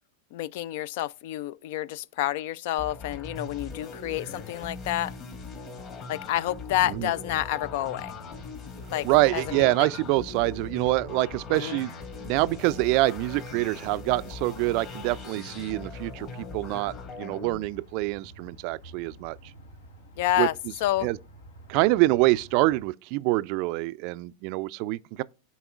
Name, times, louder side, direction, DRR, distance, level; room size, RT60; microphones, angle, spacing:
voice 1, 0.3-5.1 6.1-8.1 8.9-9.9 11.5-11.8 20.2-21.1, left 14 dB, 60° left, 0.3 m, -29 dB
sound 1, 2.8-17.5, left 4 dB, 40° left, 2.7 m, -40 dB
sound 2, 6.7-22.9, right 1 dB, 80° left, 1.4 m, -51 dB
voice 2, 9.0-11.9 12.2-19.4 20.4-20.5 21.0-21.2 21.7-25.2, right 20 dB, 50° right, 0.3 m, -25 dB
11.0 x 4.1 x 2.4 m
hypercardioid pair, 95°, 0 cm